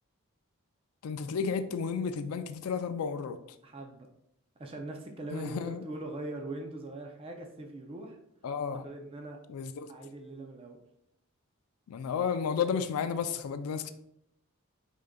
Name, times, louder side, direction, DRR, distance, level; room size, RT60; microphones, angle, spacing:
voice 1, 1.0-3.4 5.3-5.8 8.4-8.8 9.5-9.9 11.9-13.9, left 6 dB, 80° left, 10 dB, 0.4 m, -32 dB
voice 2, 3.6-4.1 4.6-8.2 8.8-9.4 9.9-10.8, right 2 dB, 25° right, 3 dB, 0.4 m, -41 dB
4.9 x 3.6 x 2.2 m, 0.77 s
head